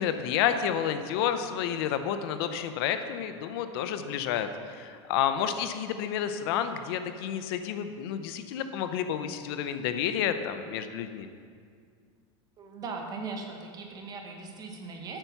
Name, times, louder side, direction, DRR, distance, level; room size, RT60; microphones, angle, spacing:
voice 1, 0.0-11.3, left 9 dB, 60° left, 9 dB, 0.6 m, -30 dB
voice 2, 12.6-15.2, right 4 dB, 25° right, 3 dB, 1.1 m, -39 dB
8.9 x 6.7 x 5.8 m, 2.1 s
supercardioid pair, 150°, 14 cm